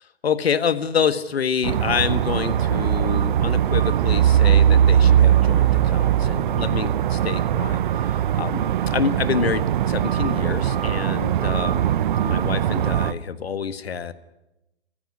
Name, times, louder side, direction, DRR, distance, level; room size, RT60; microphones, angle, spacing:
voice 1, 0.2-8.1 8.3-11.9 12.2-14.1, left 7 dB, 65° left, 12 dB, 1.7 m, -27 dB
sound 1, 1.6-13.1, right 10 dB, 50° right, 1.1 m, -20 dB
28.0 x 15.5 x 9.8 m, 0.95 s
figure-of-eight pair, 125°, 33 cm